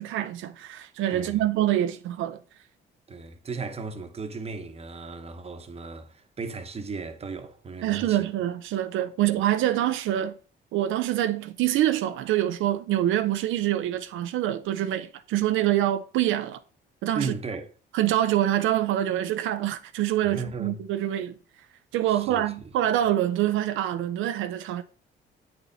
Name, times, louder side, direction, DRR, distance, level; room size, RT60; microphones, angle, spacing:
voice 1, 0.0-2.4 7.8-10.3 10.7-16.6 17.0-17.3 17.9-21.3 21.9-24.8, right 12 dB, 85° right, 0.5 m, -25 dB
voice 2, 1.1-1.4 3.1-8.2 17.1-17.7 20.2-20.8 22.1-22.5, right 4 dB, 30° right, 1.0 m, -36 dB
8.7 x 4.2 x 4.0 m
cardioid pair, 90°, 20 cm